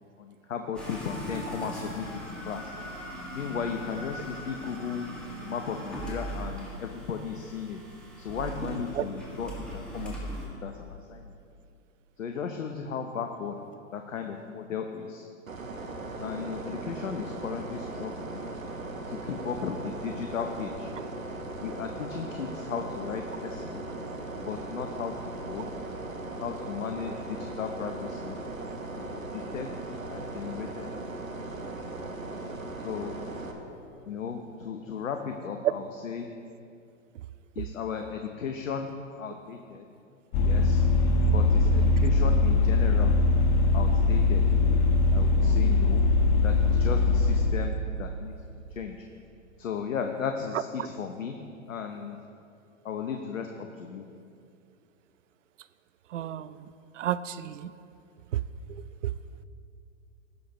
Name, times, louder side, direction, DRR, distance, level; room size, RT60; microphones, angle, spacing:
voice 1, 0.2-2.7 3.3-7.8 8.2-11.3 12.2-13.6 13.9-15.3 16.2-18.4 19.1-20.9 21.6-23.8 24.4-25.1 25.5-25.7 26.4-28.4 29.0-31.3 31.6-31.8 32.8-33.2 34.1-36.3 37.6-39.9 40.4-40.9 41.3-43.2 43.7-44.4 45.1-46.0 46.4-48.3 48.8-49.1 49.6-51.4 51.7-52.2 52.8-54.1, left 6 dB, 75° left, 5 dB, 0.8 m, -36 dB
sound 1, 0.8-10.5, right 1 dB, ahead, 1.7 m, -39 dB
sound 2, 15.5-33.5, right 2 dB, 85° right, 1.3 m, -38 dB
Vehicle, 40.3-47.7, left 3 dB, 35° left, 0.6 m, -22 dB
voice 2, 56.1-56.6 57.0-57.7, right 11 dB, 65° right, 15 dB, 0.5 m, -33 dB
17.0 x 6.5 x 3.0 m, 2.5 s
figure-of-eight pair, 110°, 40 cm